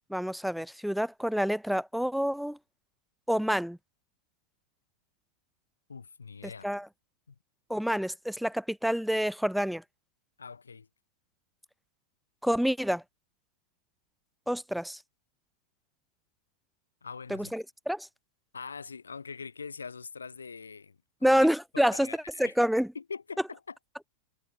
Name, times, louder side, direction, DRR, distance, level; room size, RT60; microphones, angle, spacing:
voice 1, 0.1-2.6 3.3-3.8 6.6-6.9 7.7-9.8 12.4-13.0 14.5-15.0 17.3-18.1 21.2-22.1 22.4-22.9, equal, ahead, 0.4 m, -27 dB
voice 2, 5.9-6.7 7.3-7.4 10.4-10.9 17.0-17.5 18.5-21.0 21.2-21.5 21.7-22.5 22.9-23.7, left 5 dB, 75° left, 1.2 m, -43 dB
figure-of-eight pair, 90°, 0 cm